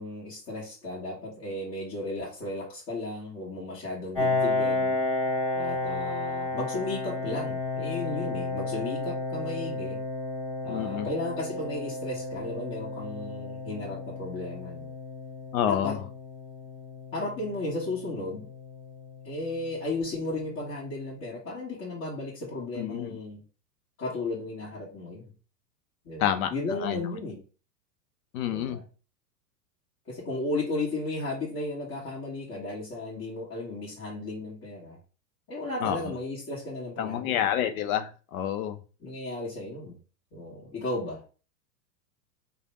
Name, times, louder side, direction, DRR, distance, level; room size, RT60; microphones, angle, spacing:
voice 1, 0.0-5.0 5.5-10.0 10.6-14.9 15.7-16.0 17.1-18.5 19.2-23.4 24.0-25.3 26.0-27.4 28.4-28.8 30.1-35.0 35.5-37.4 39.0-39.9 40.3-41.2, left 2 dB, 35° left, -7 dB, 1.6 m, -34 dB
Piano, 4.1-19.5, left 2 dB, 5° left, 1.8 m, -32 dB
voice 2, 10.7-11.1 15.5-16.0 22.7-23.2 26.2-27.1 28.3-28.8 35.8-36.1 37.0-38.8, left 10 dB, 60° left, 9 dB, 0.8 m, -29 dB
3.3 x 2.3 x 4.2 m, 0.35 s
hypercardioid pair, 105°, 49 cm